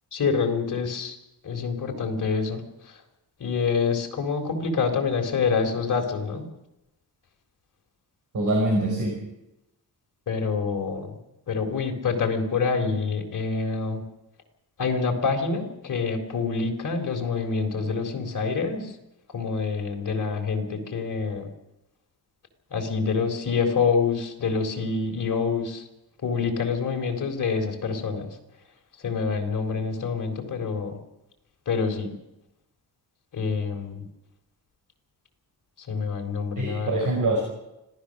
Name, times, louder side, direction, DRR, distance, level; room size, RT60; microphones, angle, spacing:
voice 1, 0.1-1.2 1.4-2.6 3.4-6.4 10.3-11.1 11.5-14.0 14.8-18.9 19.3-21.5 22.7-25.8 26.2-28.3 29.0-31.0 31.7-32.1 33.3-34.1 35.9-37.0, left 5 dB, 50° left, 3 dB, 3.7 m, -26 dB
voice 2, 8.3-9.2 36.6-37.4, right 1 dB, 55° right, 0 dB, 5.3 m, -24 dB
25.5 x 16.5 x 6.4 m, 0.92 s
wide cardioid pair, 155°, 39 cm